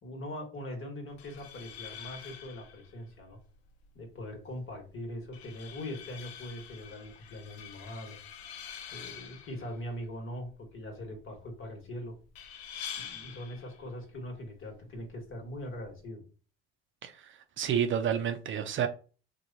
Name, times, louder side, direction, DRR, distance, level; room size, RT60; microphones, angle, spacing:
voice 1, 0.0-3.4 3.9-8.2 8.9-12.2 13.0-16.2, left 1 dB, 45° left, 1.3 m, -41 dB
sound 1, 1.1-16.1, left 8 dB, 70° left, 0.6 m, -48 dB
voice 2, 17.0-18.9, right 8 dB, 40° right, 0.5 m, -30 dB
3.0 x 2.2 x 3.8 m
supercardioid pair, 80°, 30 cm